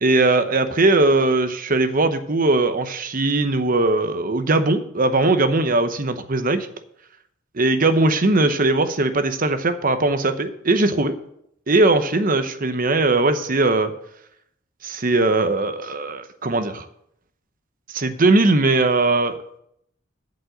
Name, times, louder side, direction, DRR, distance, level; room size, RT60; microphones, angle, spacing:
voice 1, 0.0-6.7 7.5-11.2 11.7-13.9 14.8-16.9 17.9-19.4, right 2 dB, 40° right, 10 dB, 0.9 m, -19 dB
11.5 x 5.4 x 8.0 m, 0.74 s
head